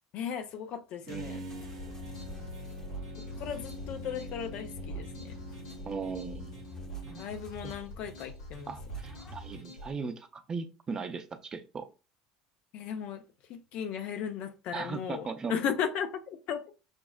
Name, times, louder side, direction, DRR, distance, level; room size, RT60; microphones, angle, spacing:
voice 1, 0.1-1.4 2.3-2.5 3.4-5.4 7.2-8.8 12.7-13.2 13.5-16.7, left 8 dB, 55° left, 0.5 m, -36 dB
sound 1, 1.0-7.3, left 2 dB, 85° right, 0.6 m, -44 dB
voice 2, 1.1-1.7 5.9-6.5 7.6-7.7 8.7-11.9 14.7-15.5, right 5 dB, 30° right, 0.5 m, -38 dB
sound 2, 1.5-9.5, left 5 dB, 20° left, 0.7 m, -49 dB
sound 3, 1.8-9.9, right 2 dB, 85° left, 1.1 m, -46 dB
5.7 x 2.0 x 2.3 m
hypercardioid pair, 80°, 2 cm